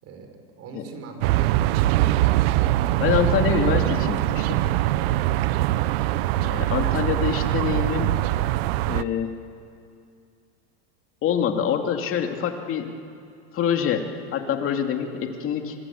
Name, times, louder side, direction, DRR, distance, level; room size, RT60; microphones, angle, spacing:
voice 1, 0.0-1.9 5.1-5.4, right 4 dB, 45° right, 5 dB, 5.1 m, -42 dB
sound 1, 1.2-9.0, right 15 dB, 65° right, 0.9 m, -22 dB
voice 2, 3.0-4.6 6.4-8.1 8.9-9.5 11.2-12.9 13.5-15.8, left 8 dB, 40° left, 4 dB, 2.8 m, -25 dB
25.0 x 24.5 x 8.5 m, 2.4 s
supercardioid pair, 110°, 33 cm